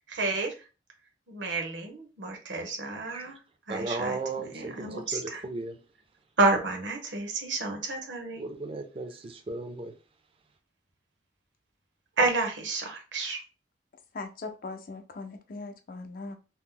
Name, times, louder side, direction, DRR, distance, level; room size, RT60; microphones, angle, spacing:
voice 1, 0.1-0.5 1.3-3.4 3.7-4.1 4.5-5.4 6.4-8.4 12.2-13.4, right 3 dB, 80° right, 0.9 m, -30 dB
voice 2, 3.7-5.8 8.4-10.0, right 3 dB, 30° right, 0.4 m, -36 dB
voice 3, 14.1-16.3, left 3 dB, 50° left, 0.5 m, -39 dB
2.9 x 2.0 x 3.6 m
head